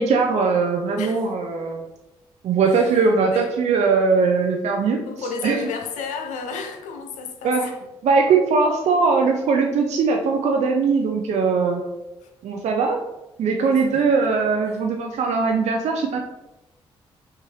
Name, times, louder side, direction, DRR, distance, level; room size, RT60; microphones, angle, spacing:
voice 1, 0.0-1.8 2.4-5.0 5.4-5.6 7.4-7.7 8.0-11.8 12.4-13.0 13.4-16.2, right 4 dB, 60° right, 0.5 m, -20 dB
voice 2, 1.0-1.3 2.6-3.5 5.0-7.8 12.2-12.3 13.6-14.1 14.6-14.8, left 5 dB, 70° left, 0.5 m, -33 dB
5.4 x 2.4 x 3.1 m
hypercardioid pair, 40°, 13 cm